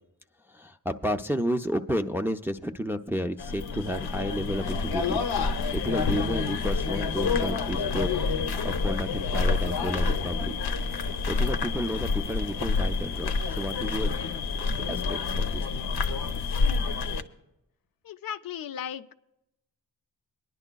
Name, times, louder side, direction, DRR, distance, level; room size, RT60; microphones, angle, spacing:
voice 1, 0.4-8.1 8.6-10.5 11.3-14.2 14.6-15.7, equal, 5° right, 6 dB, 0.3 m, -32 dB
sound 1, 3.4-17.2, left 4 dB, 85° left, 0.8 m, -28 dB
voice 2, 18.0-19.1, left 8 dB, 65° left, 12 dB, 0.5 m, -36 dB
24.0 x 10.5 x 2.2 m, 0.90 s
wide cardioid pair, 145°, 37 cm